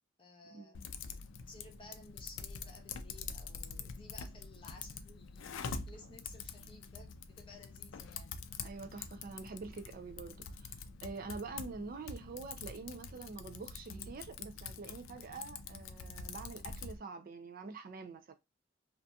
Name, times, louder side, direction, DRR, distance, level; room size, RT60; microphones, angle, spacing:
voice 1, 0.2-1.1 1.5-8.4, left 2 dB, 25° left, 0.7 m, -56 dB
Typing, 0.7-17.0, left 5 dB, 70° left, 0.4 m, -46 dB
voice 2, 8.6-18.3, right 4 dB, 45° right, 0.4 m, -46 dB
2.7 x 2.5 x 2.2 m
head